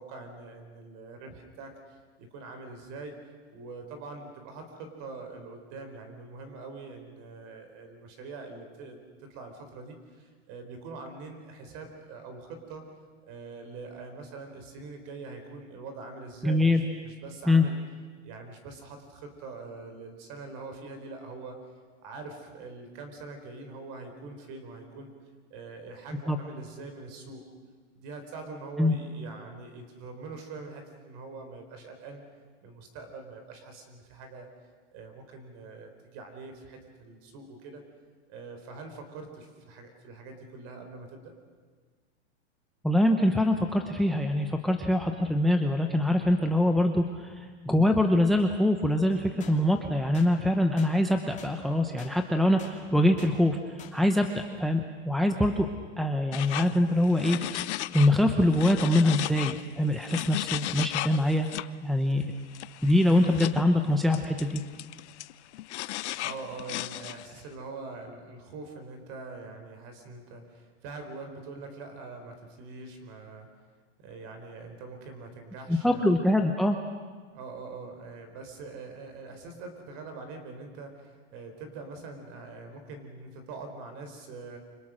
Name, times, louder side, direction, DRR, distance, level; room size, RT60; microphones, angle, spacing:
voice 1, 0.0-3.2 3.5-12.8 13.2-17.8 18.2-25.1 25.5-27.4 27.9-32.2 32.6-34.5 34.9-37.8 38.3-41.3 66.2-73.5 74.0-76.0 77.3-84.6, right 3 dB, 40° right, 6 dB, 4.4 m, -43 dB
voice 2, 16.4-16.8 17.5-17.6 26.3-26.4 28.8-29.0 42.8-55.7 56.0-57.4 57.9-61.5 61.8-62.3 62.8-64.6 75.7-76.8, left 1 dB, ahead, 5 dB, 0.9 m, -24 dB
sound 1, 49.4-49.6 50.1-50.3 50.8-50.9 51.4-51.5 52.0-52.1 52.6-52.7 53.2-53.3 53.8-53.9, left 9 dB, 20° left, 2.8 m, -47 dB
sound 2, 56.3-58.2 58.5-61.7 62.5-63.6 64.1-67.4, left 15 dB, 70° left, 0.8 m, -36 dB
28.0 x 25.5 x 6.4 m, 1.5 s
supercardioid pair, 150°, 36 cm